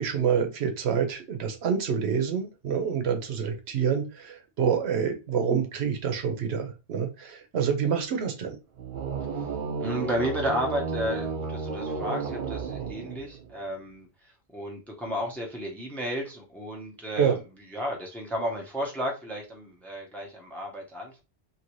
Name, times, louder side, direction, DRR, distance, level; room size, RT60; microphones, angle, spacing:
voice 1, 0.0-8.6 17.2-17.4, right 7 dB, 80° right, 5 dB, 0.9 m, -27 dB
sound 1, 8.8-13.5, right 4 dB, 60° right, 0.6 m, -32 dB
voice 2, 9.8-14.1 14.5-17.4 17.7-21.2, equal, ahead, 0 dB, 0.6 m, -33 dB
2.8 x 2.6 x 3.0 m, 0.29 s
omnidirectional pair, 1.1 m